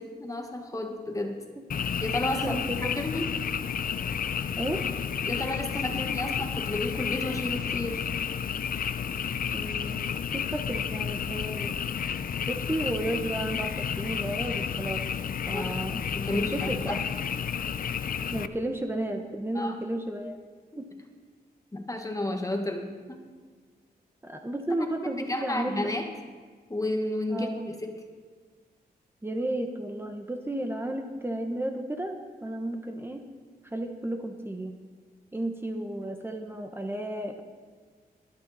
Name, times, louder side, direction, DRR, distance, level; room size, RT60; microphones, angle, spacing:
voice 1, 0.0-1.4 2.0-3.4 5.2-8.1 15.5-15.8 16.1-17.0 19.5-19.8 21.7-23.2 25.0-26.1 26.7-27.9, left 1 dB, 20° left, 4 dB, 1.4 m, -32 dB
Frog, 1.7-18.5, left 7 dB, 60° left, 0.5 m, -31 dB
voice 2, 2.4-2.9 4.6-4.8 9.5-11.8 12.5-15.1 15.5-16.0 16.3-17.0 18.3-20.4 20.8-20.9 24.2-25.9 27.3-27.6 29.2-33.2 33.6-34.7 35.3-37.4, right 1 dB, 15° right, 3 dB, 1.1 m, -33 dB
22.0 x 8.8 x 4.2 m, 1.5 s
cardioid pair, 85°, 16 cm